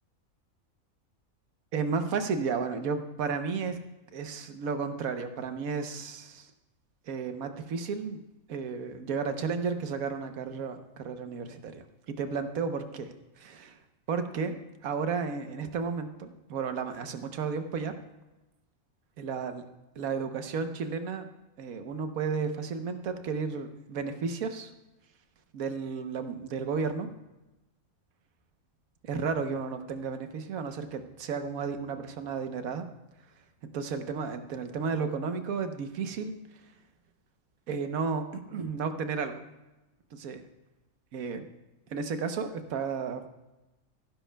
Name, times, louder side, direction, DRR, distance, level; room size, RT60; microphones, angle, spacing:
voice 1, 1.7-3.8 4.1-6.5 7.1-8.2 8.5-13.8 14.1-17.9 19.2-19.6 20.0-21.3 21.6-24.7 25.5-27.1 29.0-32.9 33.7-36.3 37.7-39.4 40.1-40.4 41.1-41.4 41.9-43.3, right 5 dB, 80° right, 8 dB, 1.3 m, -33 dB
17.0 x 10.5 x 2.2 m, 1.0 s
omnidirectional pair, 1.5 m